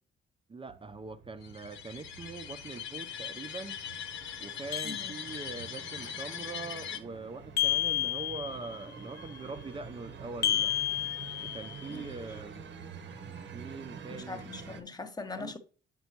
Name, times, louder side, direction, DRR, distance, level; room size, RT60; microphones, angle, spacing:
voice 1, 0.5-3.8 4.4-10.8 11.4-12.6 13.5-14.4 15.3-15.5, right 3 dB, 25° right, 0.7 m, -43 dB
sound 1, 0.7-14.8, right 5 dB, 65° right, 1.2 m, -48 dB
sound 2, 1.4-7.0, left 8 dB, 85° left, 1.0 m, -41 dB
sound 3, 4.7-5.7 7.6-8.8 10.4-11.9, left 12 dB, 55° left, 0.5 m, -31 dB
voice 2, 14.1-15.6, left 4 dB, 20° left, 1.1 m, -41 dB
8.2 x 5.5 x 3.0 m
cardioid pair, 90°, 20 cm